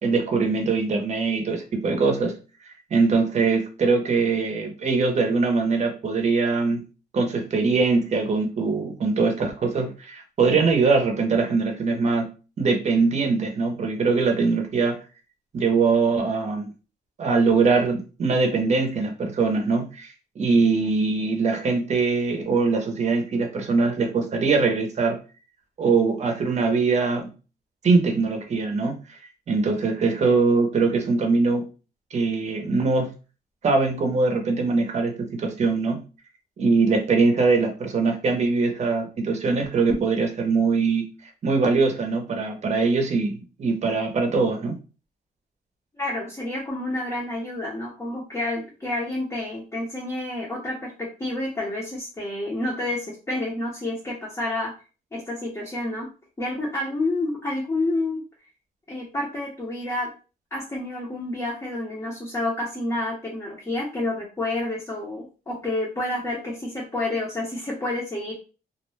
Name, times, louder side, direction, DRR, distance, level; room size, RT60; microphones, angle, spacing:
voice 1, 0.0-2.4 2.9-6.8 7.1-12.3 12.6-15.0 15.5-16.7 17.2-25.2 25.8-27.3 27.8-29.2 29.5-31.7 32.1-33.1 33.6-36.0 36.6-41.1 41.4-44.8, right 4 dB, 40° right, 4 dB, 0.7 m, -22 dB
voice 2, 46.0-54.7 55.1-56.1 56.4-58.2 58.9-60.1 60.5-68.3, left 2 dB, 15° left, -4 dB, 0.7 m, -29 dB
2.4 x 2.1 x 3.1 m, 0.33 s
wide cardioid pair, 140°, 17 cm